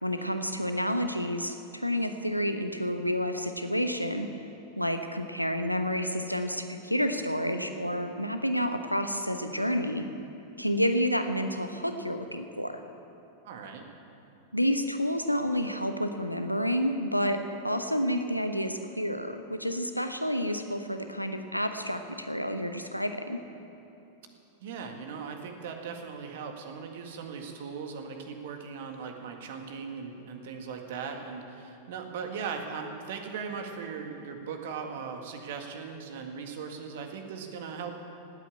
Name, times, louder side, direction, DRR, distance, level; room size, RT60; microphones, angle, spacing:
voice 1, 0.0-4.3 4.8-10.0 10.6-12.8 14.5-23.4, equal, 90° left, 7 dB, 1.0 m, -29 dB
voice 2, 13.4-13.9 24.6-37.9, right 6 dB, 55° right, 4 dB, 1.8 m, -39 dB
18.0 x 9.1 x 8.7 m, 2.9 s
figure-of-eight pair, 90°, 0 cm